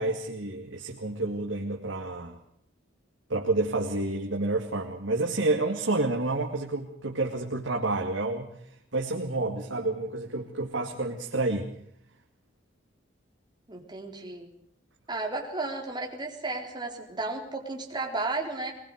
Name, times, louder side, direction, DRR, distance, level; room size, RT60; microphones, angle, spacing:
voice 1, 0.0-2.4 3.3-8.5 8.9-11.7, right 2 dB, 70° right, 1 dB, 2.4 m, -29 dB
voice 2, 13.7-14.5 15.1-18.7, right 2 dB, 25° right, 1 dB, 4.1 m, -33 dB
24.0 x 20.5 x 6.6 m, 0.67 s
head